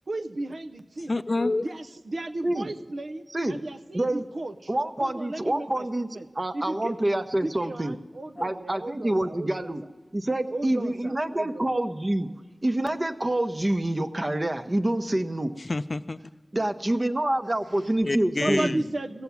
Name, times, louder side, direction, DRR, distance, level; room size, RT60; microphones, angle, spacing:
voice 1, 0.1-1.2 1.6-6.3 6.5-7.0 7.4-9.9 10.5-11.7 17.6-17.9 18.3-19.2, right 2 dB, 90° right, 6 dB, 0.6 m, -35 dB
voice 2, 1.0-1.7 15.6-16.2 18.0-18.8, left 2 dB, 55° left, 13 dB, 0.4 m, -28 dB
voice 3, 4.7-6.1 6.3-7.9 8.4-9.8 10.1-12.3 12.6-15.5 16.5-18.8, right 1 dB, 35° right, 7 dB, 0.8 m, -27 dB
16.5 x 7.0 x 9.3 m, 1.3 s
wide cardioid pair, 60°, 0 cm